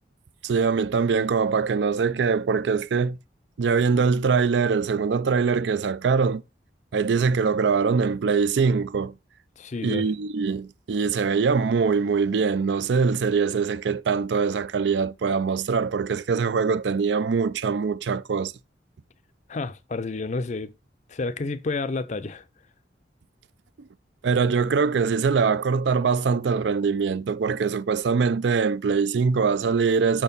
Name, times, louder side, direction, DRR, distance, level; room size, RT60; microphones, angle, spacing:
voice 1, 0.4-3.2 3.6-6.4 6.9-9.2 9.8-18.5 24.2-30.2, right 5 dB, 70° right, 0.4 m, -23 dB
voice 2, 9.6-10.1 19.5-20.7 21.1-22.4, left 3 dB, 40° left, 0.5 m, -30 dB
5.9 x 4.4 x 5.3 m
head